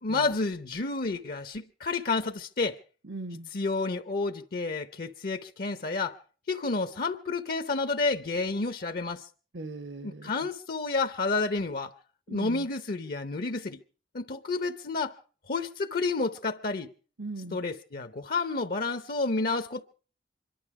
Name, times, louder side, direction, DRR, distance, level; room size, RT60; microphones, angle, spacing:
voice 1, 0.0-2.8 3.5-6.2 6.5-9.3 10.0-11.9 12.3-13.8 14.1-15.2 15.5-16.9 17.5-19.8, left 3 dB, 55° left, 0.8 m, -30 dB
voice 2, 3.0-3.5 9.5-10.3 12.3-12.7 17.2-17.6, right 2 dB, 70° right, 1.0 m, -39 dB
25.5 x 12.0 x 4.8 m
head